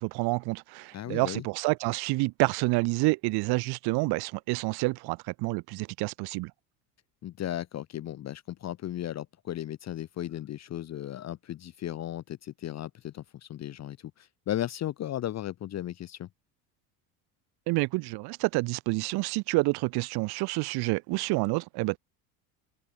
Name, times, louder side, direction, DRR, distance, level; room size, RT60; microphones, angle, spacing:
voice 1, 0.0-6.5 17.7-22.0, right 24 dB, 55° right, 0.7 m, -28 dB
voice 2, 0.9-1.4 7.2-16.3, left 12 dB, 35° left, 0.8 m, -36 dB
hypercardioid pair, 85°, 47 cm